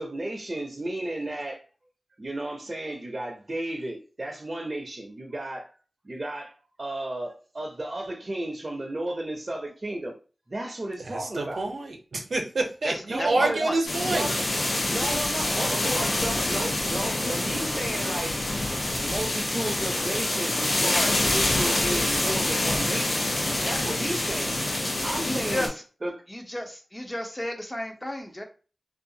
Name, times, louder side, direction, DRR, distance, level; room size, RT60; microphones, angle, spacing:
voice 1, 0.0-1.6 2.2-5.7 6.0-10.1 10.5-11.7 13.1-13.6 14.1-14.4 14.9-18.4 19.0-23.3 23.6-24.6 25.0-25.7 26.0-26.2, right 1 dB, 40° right, 0.6 m, -33 dB
voice 2, 11.1-14.3, right 2 dB, 80° right, 0.6 m, -27 dB
voice 3, 12.8-13.8 25.2-25.7 26.3-28.4, left 1 dB, 20° left, 0.7 m, -32 dB
sound 1, 13.8-25.7, left 1 dB, 75° left, 0.8 m, -26 dB
2.6 x 2.3 x 2.7 m
wide cardioid pair, 70°, 0 cm